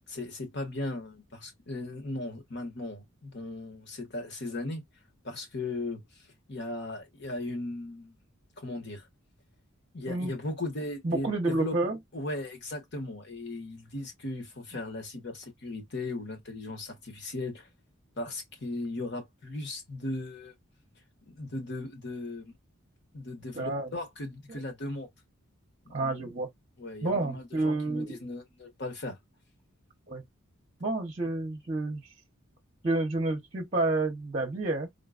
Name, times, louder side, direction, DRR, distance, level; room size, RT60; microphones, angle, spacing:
voice 1, 0.1-4.8 5.2-6.0 6.5-8.2 8.6-9.1 9.9-11.8 12.1-17.7 18.2-20.5 21.3-22.5 23.1-25.1 25.9-26.1 26.8-29.2, left 2 dB, 55° left, 1.2 m, -37 dB
voice 2, 11.0-12.0 23.5-23.9 24.5-24.6 25.9-26.5 27.0-28.2 30.1-30.2 30.8-32.0 32.8-34.9, right 2 dB, 35° right, 0.8 m, -29 dB
3.8 x 2.3 x 2.4 m
head